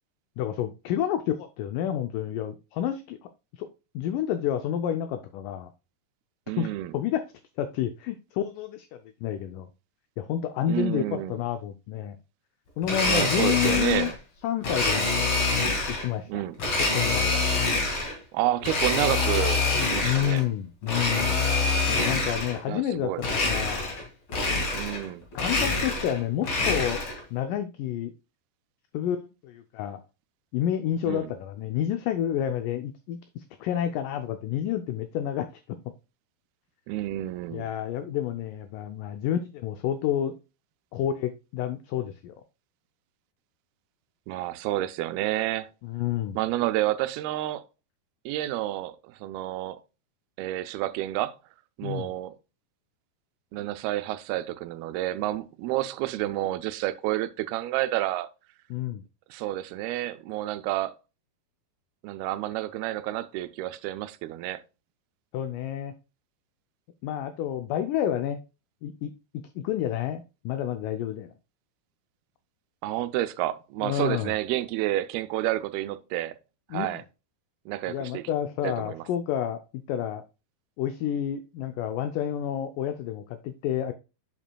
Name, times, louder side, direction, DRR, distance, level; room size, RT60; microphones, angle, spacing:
voice 1, 0.4-3.2 3.5-3.7 4.0-5.7 6.6-6.7 6.9-7.2 7.6-8.9 9.2-9.7 10.2-12.2 12.8-14.1 14.4-15.3 15.9-16.4 16.8-17.4 20.0-21.4 21.9-24.0 25.3-27.0 27.3-28.1 28.9-30.0 30.5-35.8 37.5-40.3 40.9-42.3 45.8-46.4 51.8-52.1 58.7-59.0 65.3-65.9 67.0-68.4 68.8-69.1 69.6-71.3 73.8-74.3 76.7-77.0 77.9-79.6 79.9-80.2 80.8-83.9, left 10 dB, 80° left, 1.9 m, -29 dB
voice 2, 6.5-6.9 10.7-11.4 13.0-14.1 16.3-16.6 18.3-20.4 22.7-23.2 24.7-25.2 31.1-31.3 36.9-37.7 44.3-45.7 46.4-47.6 48.3-49.8 50.4-51.4 51.8-52.4 53.5-58.3 59.3-60.9 62.0-64.6 72.8-76.3 76.7-77.0 77.7-78.2 78.6-79.0, right 15 dB, 90° right, 2.5 m, -29 dB
Domestic sounds home sounds, 12.8-14.1 14.6-16.1 16.6-18.2 18.6-20.4 20.8-22.6 23.2-24.0 24.3-25.1 25.3-27.2, left 3 dB, 40° left, 2.3 m, -26 dB
8.1 x 7.3 x 2.2 m
omnidirectional pair, 4.3 m